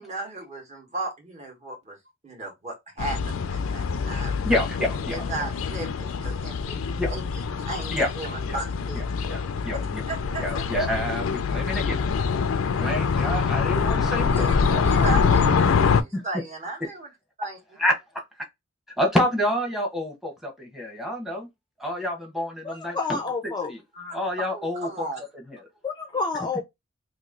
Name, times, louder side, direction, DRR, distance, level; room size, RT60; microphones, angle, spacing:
voice 1, 0.0-2.0 2.2-4.3 5.1-7.2 7.7-9.0 9.7-9.8 10.1-10.6 14.3-17.1 17.4-17.6 23.9-24.2 24.5-25.2, right 2 dB, 35° right, 1.4 m, -35 dB
sound 1, 3.0-16.0, left 5 dB, 80° left, 0.4 m, -25 dB
voice 2, 4.4-5.2 7.0-7.1 7.9-8.1 8.5-8.6 8.9-9.0 9.3-10.0 10.4-12.0 12.8-14.8 15.2-15.3 16.1-16.2 17.8-17.9 19.0-21.5 21.8-23.2 23.4-23.8 24.1-25.1 25.5-25.6, left 1 dB, ahead, 1.0 m, -28 dB
voice 3, 22.6-23.7 25.8-26.6, left 4 dB, 20° left, 0.4 m, -29 dB
3.0 x 2.7 x 3.7 m
head